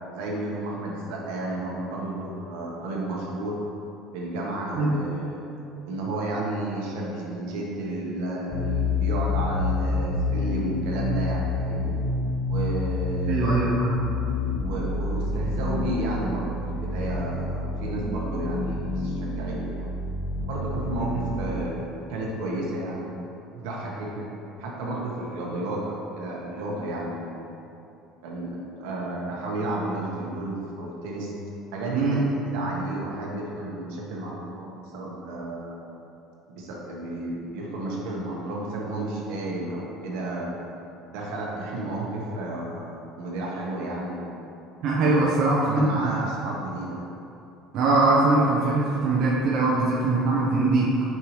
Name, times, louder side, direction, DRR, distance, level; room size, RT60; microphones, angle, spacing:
voice 1, 0.1-3.6 4.1-5.4 5.8-12.0 12.4-13.6 14.6-19.9 20.4-23.1 23.5-24.3 24.6-27.7 28.2-31.3 31.7-35.8 36.6-40.5 41.0-44.3 44.9-45.3 45.6-47.0, right 1 dB, 80° right, -3 dB, 1.2 m, -32 dB
sound 1, 8.5-21.6, left 2 dB, 30° left, 0.7 m, -28 dB
voice 2, 13.3-13.9 21.1-21.2 31.9-32.2 44.8-46.1 47.7-50.9, right 2 dB, 45° right, -5 dB, 0.7 m, -22 dB
6.7 x 4.7 x 3.1 m, 2.8 s
cardioid pair, 175°, 0 cm